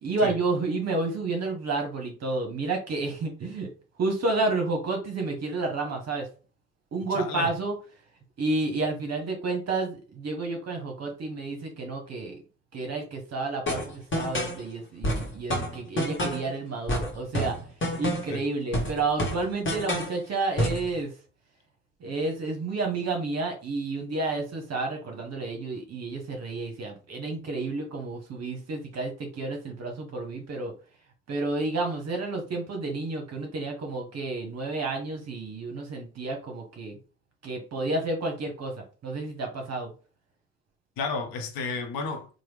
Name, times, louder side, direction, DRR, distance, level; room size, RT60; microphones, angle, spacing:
voice 1, 0.0-3.7 4.0-6.3 6.9-7.7 8.4-12.4 12.7-17.6 18.0-21.1 22.0-30.7 31.3-37.0 37.4-38.7 39.0-39.9, right 3 dB, 40° right, 0.9 m, -30 dB
voice 2, 7.1-7.5 18.3-18.4 41.0-42.3, left 4 dB, 60° left, 0.8 m, -32 dB
sound 1, 13.7-14.6 15.0-16.5 16.9-18.4 18.7-20.2 20.6-20.9, equal, 30° left, 1.2 m, -28 dB
2.9 x 2.2 x 3.4 m
hypercardioid pair, 50°, 39 cm